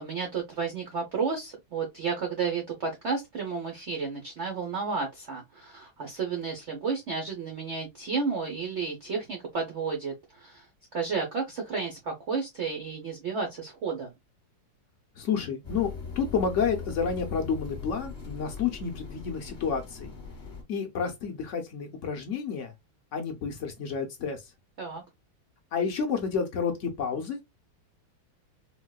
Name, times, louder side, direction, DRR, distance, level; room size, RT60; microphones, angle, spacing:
voice 1, 0.0-10.7 10.9-14.1 24.8-25.0, right 5 dB, 70° right, 0.6 m, -32 dB
voice 2, 15.2-20.1 20.7-22.7 23.1-24.5 25.7-27.4, left 6 dB, 70° left, 0.7 m, -30 dB
sound 1, 15.6-20.6, left 5 dB, 30° left, 1.0 m, -40 dB
4.3 x 2.1 x 2.2 m
omnidirectional pair, 2.1 m